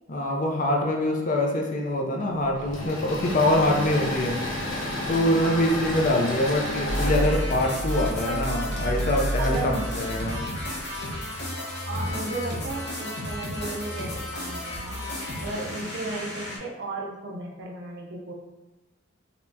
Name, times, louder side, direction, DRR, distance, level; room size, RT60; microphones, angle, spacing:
voice 1, 0.1-4.4 5.1-10.4, left 1 dB, 40° left, 1 dB, 0.4 m, -24 dB
Engine / Mechanisms, 2.6-11.0, left 1 dB, 80° left, 1.0 m, -33 dB
voice 2, 5.4-6.0 8.2-8.4 9.4-9.9 11.7-15.0 15.4-18.3, right 2 dB, 55° right, -1 dB, 0.6 m, -35 dB
sound 1, 6.9-16.6, equal, 55° left, 0.8 m, -31 dB
4.2 x 2.2 x 2.6 m, 1.1 s
head